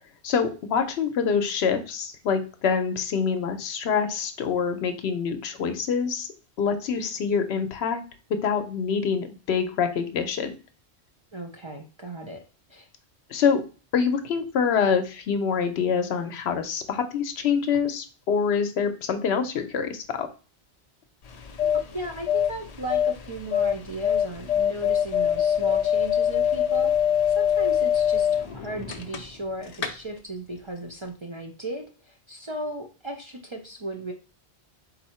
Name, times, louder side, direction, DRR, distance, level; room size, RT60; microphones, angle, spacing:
voice 1, 0.2-6.3 6.6-8.0 8.3-10.5 13.3-13.6 13.9-20.3, left 6 dB, 75° left, 8 dB, 0.9 m, -25 dB
voice 2, 11.3-12.4 12.7-12.9 21.6-26.9 27.3-34.1, right 1 dB, 35° right, 2 dB, 0.5 m, -36 dB
sound 1, 21.3-29.5 29.7-29.9, left 9 dB, 50° left, 0.5 m, -24 dB
4.1 x 2.7 x 4.3 m, 0.35 s
omnidirectional pair, 1.1 m